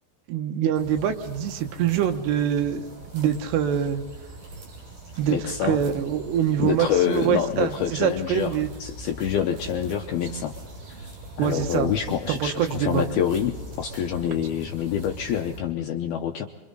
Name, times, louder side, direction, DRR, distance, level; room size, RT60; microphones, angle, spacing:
voice 1, 0.3-2.9 3.1-4.0 5.2-8.7 11.4-11.9 12.3-13.0, right 9 dB, 75° right, 5 dB, 3.1 m, -24 dB
sound 1, 0.7-15.6, right 1 dB, 45° right, 8.8 m, -42 dB
voice 2, 5.3-5.8 6.6-10.6 11.4-16.5, left 9 dB, 80° left, 3 dB, 2.3 m, -26 dB
27.0 x 24.5 x 3.9 m, 1.2 s
omnidirectional pair, 5.3 m